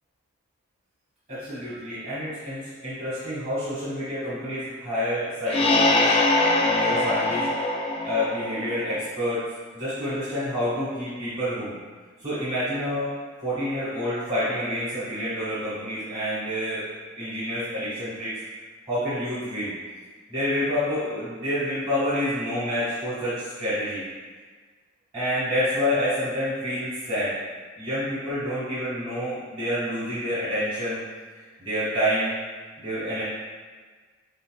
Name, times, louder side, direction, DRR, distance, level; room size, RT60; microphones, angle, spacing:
voice 1, 1.3-6.1 6.7-7.5 8.0-9.4 9.7-11.7 12.2-13.1 13.4-16.8 17.2-18.4 18.9-19.7 20.3-24.0 25.1-27.3 27.8-31.0 31.3-32.3 32.8-33.2, equal, 30° right, -12 dB, 1.4 m, -28 dB
sound 1, 5.5-9.1, left 2 dB, 30° left, 0.4 m, -23 dB
4.3 x 3.9 x 2.2 m, 1.5 s
head